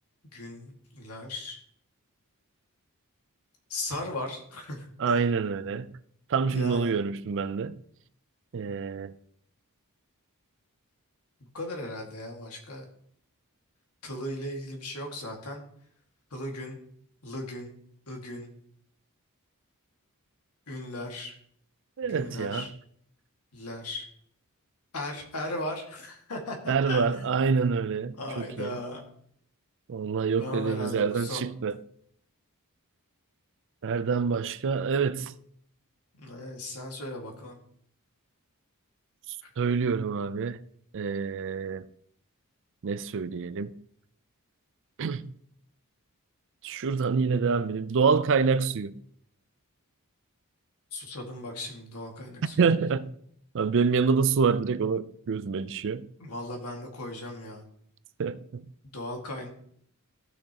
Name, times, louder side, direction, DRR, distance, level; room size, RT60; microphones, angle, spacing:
voice 1, 0.3-1.6 3.7-5.2 6.5-6.9 11.5-12.9 14.0-15.6 16.3-16.8 17.2-17.7 18.1-18.5 20.7-21.4 22.1-22.7 23.5-24.1 24.9-27.4 28.2-29.1 30.4-31.4 36.2-37.6 39.4-39.5 50.9-52.6 56.2-57.6 58.9-59.5, left 1 dB, 85° left, 2.0 m, -37 dB
voice 2, 5.0-6.0 6.3-7.8 8.5-9.1 22.0-22.7 26.7-28.8 29.9-31.8 33.8-35.3 39.3-40.6 40.9-41.8 42.8-43.7 45.0-45.3 46.6-48.9 52.6-53.1 53.5-56.1 58.2-58.7, right 5 dB, 60° right, 0.4 m, -27 dB
15.0 x 6.4 x 2.9 m
head